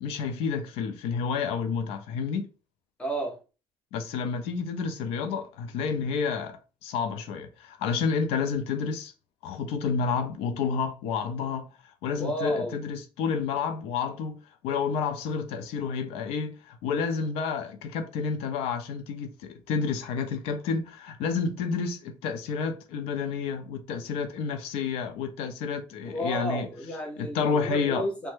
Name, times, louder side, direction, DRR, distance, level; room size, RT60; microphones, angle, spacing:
voice 1, 0.0-2.5 3.9-9.1 9.4-11.7 12.0-14.4 14.6-26.7 27.2-28.1, left 5 dB, 75° left, 0.5 m, -30 dB
voice 2, 3.0-3.4 12.2-12.8 26.0-28.3, right 1 dB, 10° left, 0.6 m, -32 dB
3.1 x 2.1 x 3.1 m
cardioid pair, 165°, 10 cm